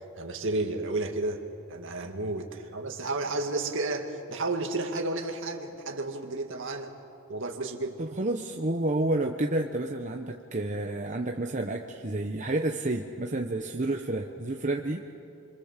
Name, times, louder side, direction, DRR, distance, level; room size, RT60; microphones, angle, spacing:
voice 1, 0.2-1.4 1.7-6.9 7.3-8.0, right 2 dB, 60° right, 4 dB, 2.2 m, -32 dB
voice 2, 8.0-15.1, right 2 dB, 35° right, 2 dB, 1.0 m, -30 dB
26.5 x 25.0 x 7.5 m, 2.6 s
head